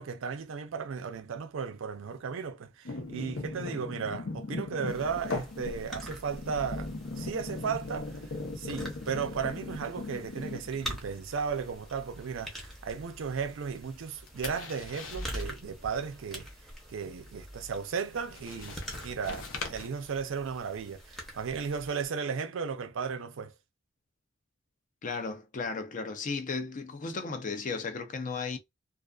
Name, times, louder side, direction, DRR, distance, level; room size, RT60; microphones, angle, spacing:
voice 1, 0.0-8.1 8.6-16.5 16.9-23.5, right 6 dB, 80° right, 0.4 m, -35 dB
sound 1, 2.9-11.0 11.3-11.7 14.0-15.5 18.1-19.9, left 3 dB, 85° left, 0.6 m, -39 dB
sound 2, 4.9-22.1, equal, ahead, 0.7 m, -45 dB
voice 2, 25.0-28.6, left 4 dB, 40° left, 0.5 m, -35 dB
2.4 x 2.4 x 2.3 m
head